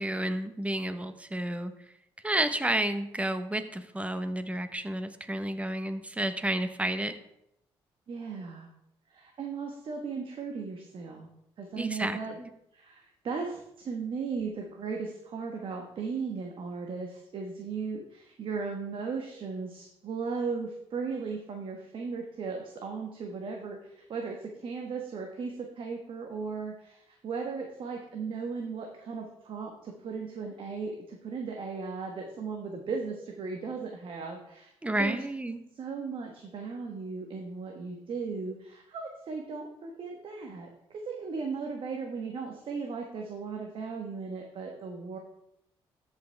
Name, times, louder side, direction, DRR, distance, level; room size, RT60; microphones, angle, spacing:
voice 1, 0.0-1.7 2.2-7.1 11.8-12.5 34.8-35.6, right 1 dB, 10° right, 9 dB, 0.9 m, -31 dB
voice 2, 8.1-8.7 9.1-11.3 11.6-12.4 12.7-34.7 35.0-35.2 35.7-45.2, right 5 dB, 55° right, 2 dB, 1.2 m, -37 dB
13.5 x 5.7 x 3.4 m, 0.78 s
supercardioid pair, 70°, 10 cm